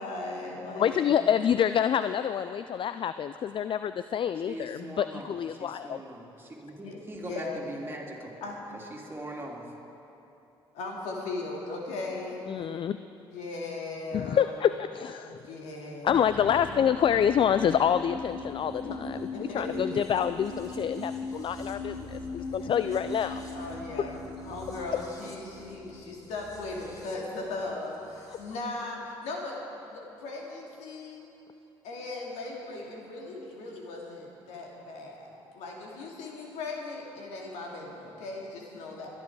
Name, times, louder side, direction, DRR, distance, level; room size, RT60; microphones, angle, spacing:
voice 1, 0.0-1.1 6.8-7.6 8.4-8.6 10.7-12.9 13.3-14.6 15.2-16.2 16.5-16.6 18.8-19.0 19.3-19.9 22.5-22.8 23.5-29.6 29.9-31.3 31.8-39.1, left 2 dB, 75° left, -1 dB, 2.5 m, -38 dB
voice 2, 0.8-6.0 12.5-13.0 14.1-15.4 16.0-23.4 23.9-24.1, left 9 dB, 45° left, 12 dB, 0.4 m, -27 dB
voice 3, 4.5-8.4 8.7-9.7, right 1 dB, 20° right, -2 dB, 2.9 m, -41 dB
sound 1, 16.1-28.5, left 2 dB, 30° left, 2.4 m, -40 dB
22.0 x 10.5 x 4.8 m, 2.9 s
hypercardioid pair, 55°, 12 cm